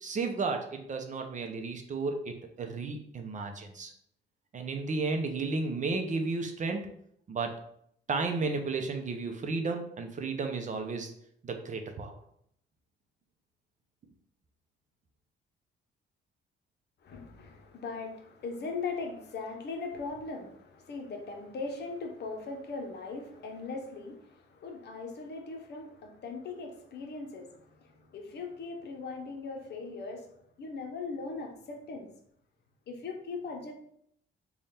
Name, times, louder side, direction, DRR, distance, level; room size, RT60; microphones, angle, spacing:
voice 1, 0.0-3.9 4.5-6.9 7.3-7.5 8.1-11.1 11.4-12.2, right 3 dB, 40° right, 4 dB, 0.6 m, -33 dB
voice 2, 17.0-30.3 30.6-32.1 32.9-33.7, left 4 dB, 60° left, 3 dB, 0.8 m, -39 dB
3.3 x 2.3 x 4.1 m, 0.69 s
cardioid pair, 90°, 20 cm